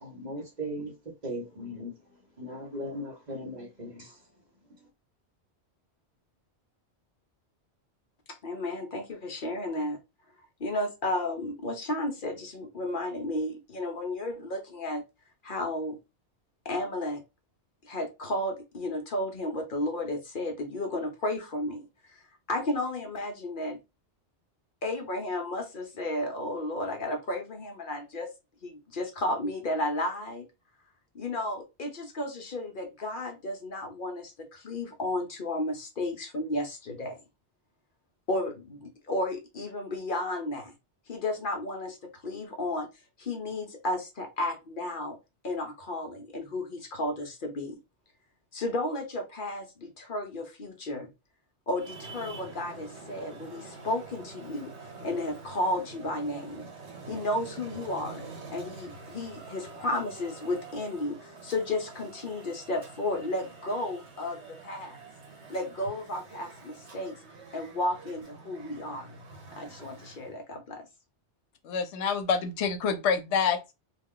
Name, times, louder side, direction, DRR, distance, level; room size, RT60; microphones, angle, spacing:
voice 1, 0.0-0.9 1.2-2.0 2.4-4.2, equal, 40° right, 1.0 m, -38 dB
voice 2, 8.3-10.0 10.6-15.0 15.4-16.0 16.6-17.2 17.8-22.2 22.5-23.8 24.8-28.3 28.6-30.5 31.1-37.2 38.3-40.7 41.1-42.9 43.2-45.2 45.4-47.8 48.5-51.1 51.7-56.7 57.1-58.2 58.5-65.0 65.5-67.2 67.5-69.1 69.5-70.9, left 1 dB, 55° left, 0.7 m, -33 dB
Traffic noise roadway noise, 51.7-70.4, right 3 dB, 75° right, 1.2 m, -46 dB
voice 3, 71.6-73.7, left 6 dB, 85° left, 0.9 m, -27 dB
2.4 x 2.3 x 3.6 m
omnidirectional pair, 1.2 m